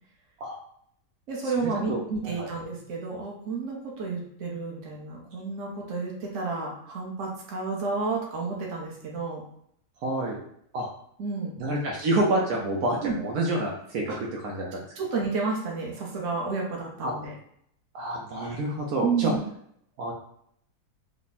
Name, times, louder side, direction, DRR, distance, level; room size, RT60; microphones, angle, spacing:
voice 1, 1.3-9.4 11.2-11.6 13.0-13.2 14.1-14.2 15.0-17.3 19.0-19.4, right 4 dB, 55° right, -2 dB, 1.2 m, -31 dB
voice 2, 1.9-2.5 10.0-10.4 10.7-10.9 11.6-14.8 17.0-17.1 17.9-19.3 20.0-20.1, right 1 dB, 75° right, -2 dB, 1.2 m, -28 dB
3.5 x 2.1 x 4.0 m, 0.69 s
omnidirectional pair, 1.6 m